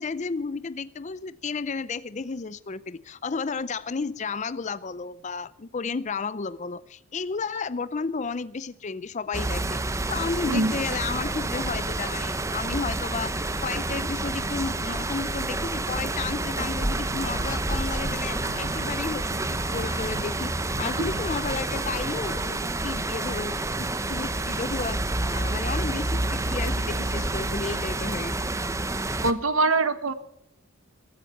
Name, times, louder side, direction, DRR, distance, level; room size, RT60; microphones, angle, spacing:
voice 1, 0.0-9.8 10.0-25.0 25.3-28.3, left 4 dB, 35° left, 16 dB, 0.5 m, -32 dB
sound 1, 9.3-29.3, right 2 dB, 15° right, 0.8 m, -29 dB
sound 2, 17.0-22.6, left 1 dB, 65° right, 4.8 m, -42 dB
voice 2, 29.2-30.1, right 3 dB, 80° right, 12 dB, 1.4 m, -23 dB
15.0 x 14.0 x 5.8 m, 0.72 s
head